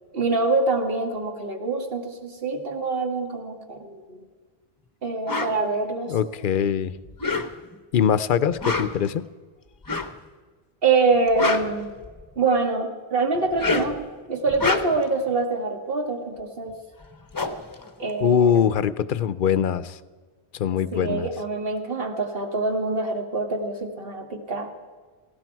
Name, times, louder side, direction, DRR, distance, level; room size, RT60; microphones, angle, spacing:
voice 1, 0.1-4.2 5.0-6.2 10.8-11.9 12.4-14.0 14.3-16.7 18.0-18.7 20.9-24.7, right 3 dB, 65° right, 3 dB, 2.0 m, -25 dB
sound 1, 5.3-5.6 7.1-7.8 8.5-9.1 9.8-10.2 11.1-12.4 13.4-14.0 14.5-15.1 16.7-16.8 17.0-18.7, left 3 dB, 20° left, 0.8 m, -28 dB
voice 2, 6.1-6.9 7.9-9.2 18.2-20.0 20.5-21.3, left 8 dB, 60° left, 15 dB, 0.7 m, -22 dB
18.5 x 16.5 x 4.6 m, 1.5 s
omnidirectional pair, 1.0 m